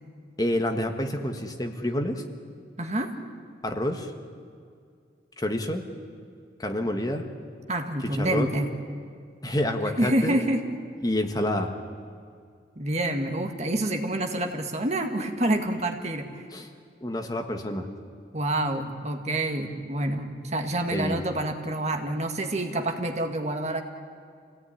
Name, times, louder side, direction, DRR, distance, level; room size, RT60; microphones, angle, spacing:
voice 1, 0.4-2.2 3.6-4.1 5.4-5.8 6.6-7.3 8.0-8.5 9.4-10.4 11.0-11.7 16.5-16.7 17.0-17.9 20.9-21.2, left 1 dB, 20° left, 5 dB, 1.5 m, -28 dB
voice 2, 2.8-3.1 7.7-8.7 10.0-10.6 12.8-16.4 18.3-23.8, right 1 dB, 40° right, 5 dB, 2.0 m, -27 dB
27.5 x 17.5 x 10.0 m, 2.2 s
head